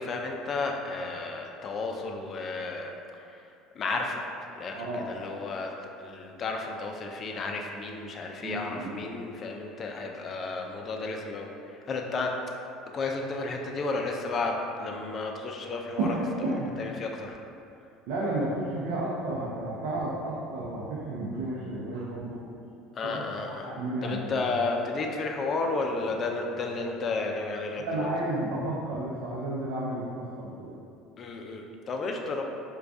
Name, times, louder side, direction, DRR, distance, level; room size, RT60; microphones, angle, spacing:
voice 1, 0.0-3.4 3.7-4.2 4.5-5.7 6.0-12.3 12.9-14.5 14.8-16.2 16.8-17.4 22.9-23.7 24.0-28.1 31.2-32.4, left 3 dB, 35° left, 2 dB, 0.4 m, -32 dB
voice 2, 4.7-5.0 8.4-9.0 16.0-16.7 18.1-22.4 23.0-24.5 27.8-30.7, right 2 dB, 75° right, -6 dB, 0.5 m, -32 dB
4.5 x 2.2 x 2.5 m, 2.6 s
supercardioid pair, 115°, 0 cm